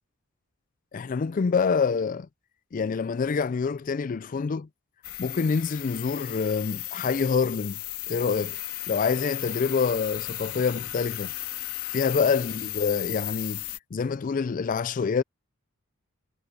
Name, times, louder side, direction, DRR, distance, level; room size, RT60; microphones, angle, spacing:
voice 1, 0.9-2.3 2.7-4.7 5.2-7.8 8.1-8.6 8.9-11.3 11.9-13.6 13.9-15.2, left 5 dB, 35° left, 0.3 m, -26 dB
sound 1, 5.0-13.8, left 15 dB, 80° left, 3.0 m, -35 dB
head